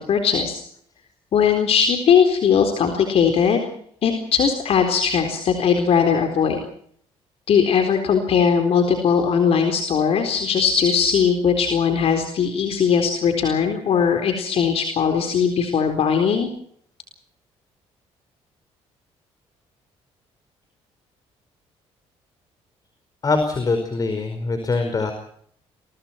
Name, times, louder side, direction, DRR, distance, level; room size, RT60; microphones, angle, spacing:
voice 1, 0.1-0.6 1.3-3.7 4.0-6.6 7.5-16.5, left 7 dB, 60° left, 5 dB, 4.1 m, -19 dB
voice 2, 23.2-25.1, left 3 dB, 35° left, 6 dB, 4.9 m, -23 dB
29.0 x 23.5 x 4.5 m, 0.64 s
cardioid pair, 100°, 12 cm